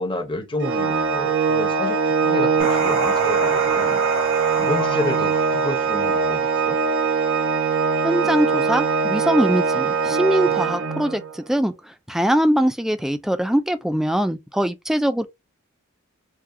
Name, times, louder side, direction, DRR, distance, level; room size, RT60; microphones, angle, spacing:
voice 1, 0.0-4.0 4.6-6.8, left 1 dB, 25° left, 0.8 m, -30 dB
Organ, 0.6-11.4, right 5 dB, 60° right, 0.5 m, -21 dB
sound 1, 2.6-6.8, right 2 dB, 80° right, 1.7 m, -29 dB
voice 2, 8.0-15.3, equal, ahead, 0.3 m, -22 dB
4.7 x 2.3 x 2.7 m
head